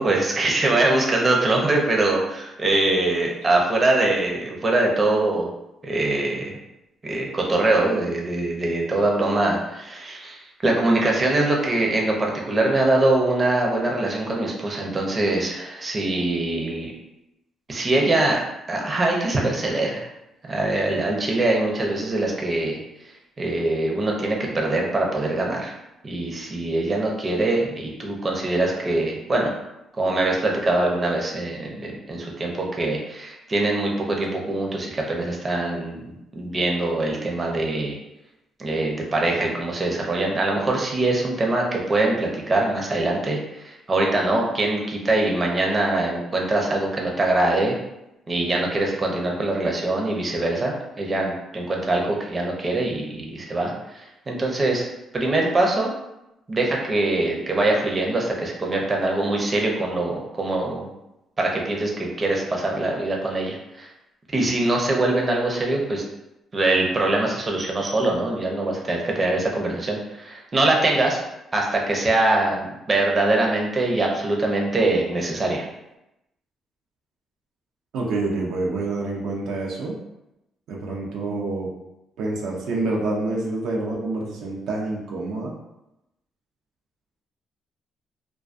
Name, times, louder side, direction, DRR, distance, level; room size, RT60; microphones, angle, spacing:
voice 1, 0.0-5.5 5.8-6.5 7.0-16.9 17.7-18.4 18.7-20.1 20.5-22.8 23.4-25.7 26.0-29.5 30.0-36.0 36.3-37.9 38.6-47.8 48.3-54.9 55.1-55.9 56.5-60.9 61.4-63.9 64.3-66.0 66.5-71.2 71.5-75.7, right 2 dB, 30° right, -1 dB, 0.5 m, -23 dB
voice 2, 77.9-80.0 80.7-81.7 82.2-85.5, right 2 dB, 85° right, -2 dB, 0.4 m, -27 dB
2.3 x 2.2 x 2.4 m, 0.90 s
cardioid pair, 90°, 0 cm